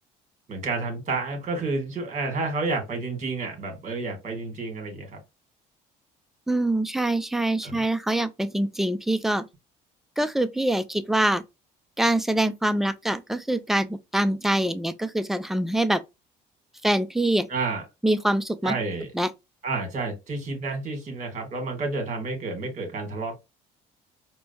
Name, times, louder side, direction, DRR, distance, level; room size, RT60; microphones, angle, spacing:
voice 1, 0.5-5.2 7.6-7.8 17.5-17.8 18.6-19.1 19.6-23.4, right 3 dB, 45° right, 1.7 m, -30 dB
voice 2, 6.5-9.4 10.2-11.4 12.0-16.0 16.8-17.5 18.0-18.7 19.1-19.3, right 1 dB, ahead, 0.4 m, -24 dB
4.4 x 2.1 x 2.7 m
supercardioid pair, 80°, 18 cm